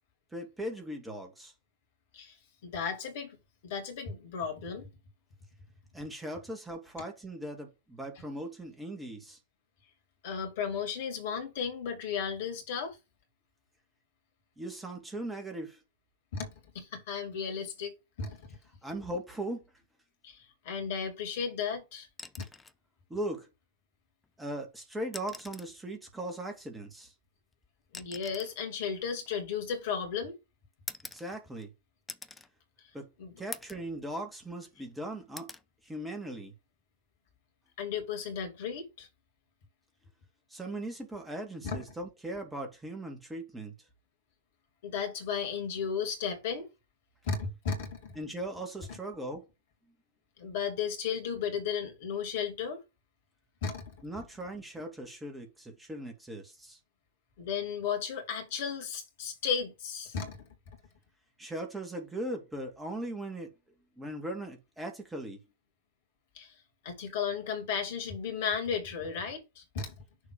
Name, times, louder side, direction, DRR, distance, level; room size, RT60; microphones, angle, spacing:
voice 1, 0.3-1.5 5.9-9.4 14.6-15.8 18.8-19.6 23.1-23.5 24.4-27.1 31.1-31.7 32.9-33.1 33.4-35.5 35.8-36.5 40.5-43.7 48.2-49.5 54.0-56.8 61.4-63.5 64.0-65.4, right 1 dB, 10° right, 2.1 m, -39 dB
voice 2, 2.6-3.4 3.6-4.9 10.2-13.0 16.3-17.9 18.2-18.4 20.2-22.1 22.4-22.5 27.9-30.4 32.8-32.9 33.2-33.3 37.8-39.1 41.6-41.8 44.8-46.7 47.2-48.1 48.9-49.0 50.4-52.8 53.6-53.9 57.4-60.5 66.3-66.5 66.8-69.9, left 6 dB, 55° left, 2.5 m, -34 dB
sound 1, 22.1-22.8 24.2-24.4 25.0-25.8 27.0-30.0 30.9-31.7 32.1-32.5 32.9-33.0 33.5-33.9 34.3-34.9 35.4-35.7 37.1-37.4, left 3 dB, 10° left, 0.7 m, -46 dB
6.6 x 3.5 x 5.1 m
figure-of-eight pair, 90°, 0 cm